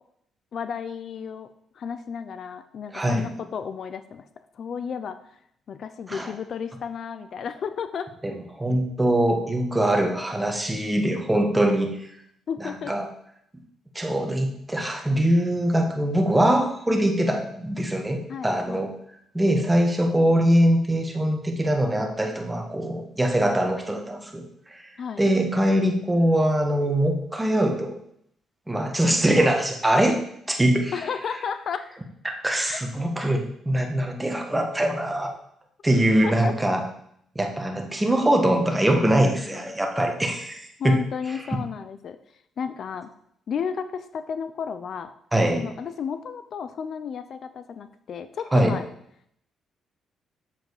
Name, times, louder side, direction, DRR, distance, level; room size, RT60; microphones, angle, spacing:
voice 1, 0.5-1.5 1.8-4.3 4.5-5.2 5.7-8.1 12.5-12.9 18.3-18.9 25.0-25.2 30.9-31.9 32.7-32.8 36.2-36.5 39.5-39.7 40.8-42.2 42.6-43.1 43.5-45.1 45.5-48.9, left 6 dB, 60° left, 11 dB, 0.6 m, -32 dB
voice 2, 2.9-3.3 6.1-6.3 8.2-12.0 12.6-13.1 14.0-18.9 19.3-24.4 24.7-24.8 25.2-28.0 28.7-30.2 30.5-30.9 32.3-35.3 35.8-36.8 37.4-41.0 41.3-41.4 45.3-45.7 48.5-48.8, right 1 dB, 10° right, 3 dB, 1.7 m, -22 dB
7.5 x 7.4 x 5.0 m, 0.72 s
cardioid pair, 90°, 0 cm